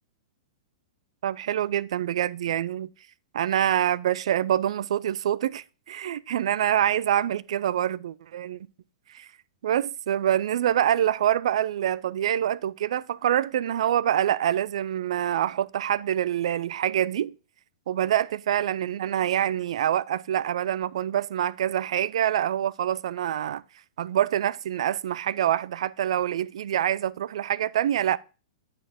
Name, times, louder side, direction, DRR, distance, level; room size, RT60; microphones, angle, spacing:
voice 1, 1.2-2.9 3.3-8.7 9.1-9.3 9.6-17.4 17.9-23.6 24.0-28.2, right 11 dB, 70° right, 0.4 m, -26 dB
9.2 x 4.2 x 4.3 m
hypercardioid pair, 120°, 3 cm